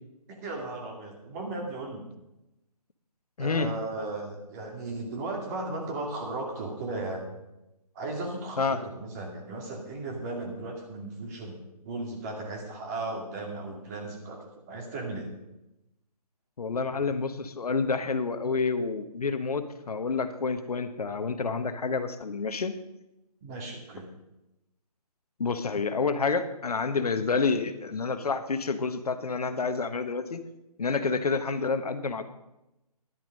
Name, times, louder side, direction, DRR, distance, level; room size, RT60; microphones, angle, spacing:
voice 1, 0.4-2.1 3.4-7.3 7.9-11.6 11.8-15.3 23.4-24.1, right 2 dB, 25° right, 1 dB, 2.3 m, -36 dB
voice 2, 16.6-22.7 25.4-30.4 30.8-32.2, left 4 dB, 70° left, 9 dB, 1.1 m, -28 dB
11.0 x 10.5 x 5.3 m, 0.93 s
figure-of-eight pair, 150°, 21 cm